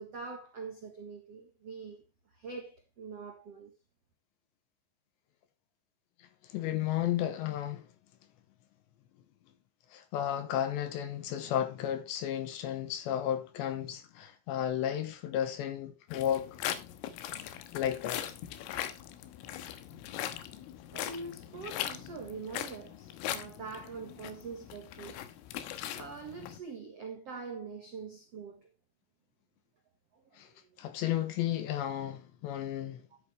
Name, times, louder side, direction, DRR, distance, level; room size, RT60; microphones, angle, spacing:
voice 1, 0.0-2.0 2.3-3.7 20.9-25.2 25.9-28.7 30.1-30.5 33.1-33.2, right 4 dB, 65° right, 1.6 m, -44 dB
voice 2, 6.4-7.9 9.9-16.6 17.5-18.3 30.4-30.5 30.8-33.0, left 11 dB, 70° left, 3.1 m, -33 dB
sound 1, 16.1-26.6, left 12 dB, 85° left, 3.7 m, -40 dB
13.5 x 8.5 x 3.3 m
omnidirectional pair, 5.7 m